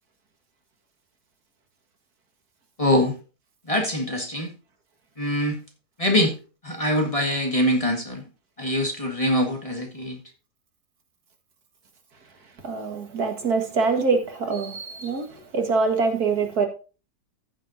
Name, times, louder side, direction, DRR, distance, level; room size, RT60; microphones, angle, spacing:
voice 1, 2.8-3.1 3.7-4.5 5.2-5.6 6.0-6.3 6.6-8.2 8.6-10.2, left 1 dB, 20° left, 1.8 m, -23 dB
voice 2, 12.6-16.7, right 4 dB, 70° right, 2.3 m, -24 dB
14.5 x 7.4 x 2.7 m
omnidirectional pair, 1.7 m